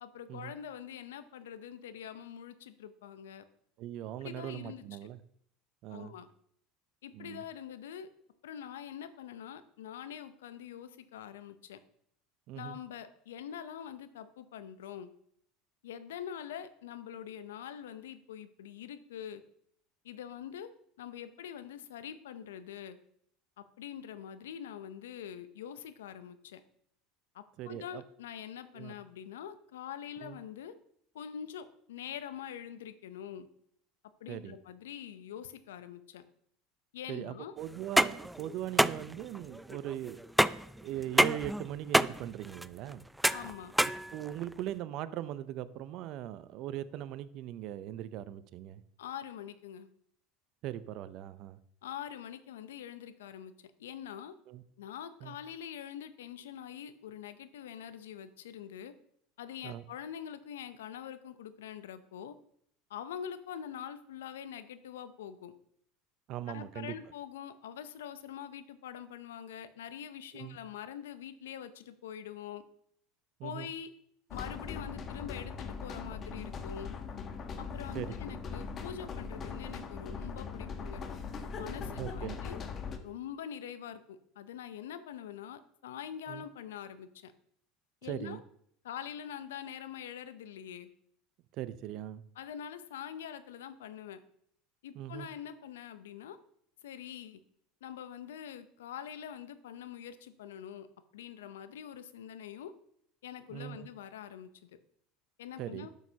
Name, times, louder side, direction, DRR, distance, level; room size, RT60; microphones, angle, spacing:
voice 1, 0.0-3.4 4.2-5.0 5.9-6.3 7.0-8.1 8.4-11.8 12.5-15.1 15.8-19.4 20.0-20.7 21.0-23.0 23.6-26.6 27.3-30.7 31.1-33.5 34.2-36.2 36.9-37.5 43.3-43.8 49.0-49.9 51.8-53.5 53.8-54.3 54.8-58.9 59.4-62.3 62.9-65.5 66.5-72.6 73.4-73.9 74.3-76.9 77.6-81.0 81.6-82.6 83.0-87.3 88.0-88.4 88.8-90.9 92.4-94.2 94.8-96.4 96.8-97.4 97.8-100.9 101.1-102.7 103.2-104.7 105.4-105.9, left 9 dB, 80° left, 11 dB, 0.7 m, -44 dB
voice 2, 3.8-5.2 5.8-6.1 7.1-7.4 12.5-12.8 27.6-28.0 28.7-28.9 30.2-30.4 34.3-34.6 37.1-40.2 40.8-43.0 44.1-48.8 50.6-51.6 54.5-54.6 55.2-55.4 59.6-59.8 66.3-66.9 70.3-70.6 73.4-73.7 77.9-78.1 81.8-82.4 86.3-86.4 88.0-88.4 91.6-92.2 95.0-95.3 103.5-103.9 105.6-105.9, right 12 dB, 60° right, 15 dB, 0.5 m, -40 dB
sound 1, 37.7-44.7, right 1 dB, 5° right, 0.3 m, -29 dB
sound 2, 74.3-83.0, left 5 dB, 40° left, 1.2 m, -40 dB
12.0 x 6.5 x 2.8 m, 0.67 s
hypercardioid pair, 80°, 0 cm